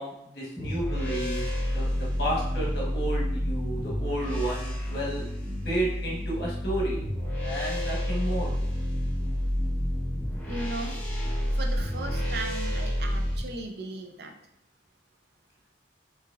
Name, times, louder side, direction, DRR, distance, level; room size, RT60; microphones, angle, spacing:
voice 1, 0.0-1.5 1.7-1.9 2.2-5.2 5.6-7.0 7.4-8.5, right 1 dB, 55° left, -3 dB, 1.0 m, -31 dB
sound 1, 0.6-13.4, equal, 10° left, 0.6 m, -29 dB
voice 2, 10.5-11.0 11.5-14.3, right 2 dB, 55° right, 4 dB, 0.4 m, -37 dB
4.6 x 2.7 x 2.4 m, 0.78 s
head